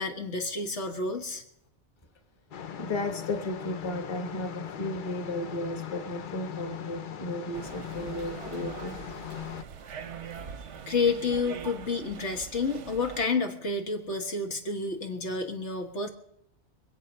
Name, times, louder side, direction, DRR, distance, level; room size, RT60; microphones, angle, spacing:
voice 1, 0.0-1.4 10.9-16.1, left 4 dB, 80° left, 3 dB, 1.9 m, -30 dB
sound 1, 2.5-9.6, left 9 dB, 50° left, 0.7 m, -39 dB
voice 2, 2.8-9.0, left 1 dB, 25° left, 5 dB, 1.3 m, -34 dB
sound 2, 7.5-13.3, right 7 dB, 85° right, 1.2 m, -43 dB
24.5 x 8.4 x 5.5 m, 0.74 s
omnidirectional pair, 1.2 m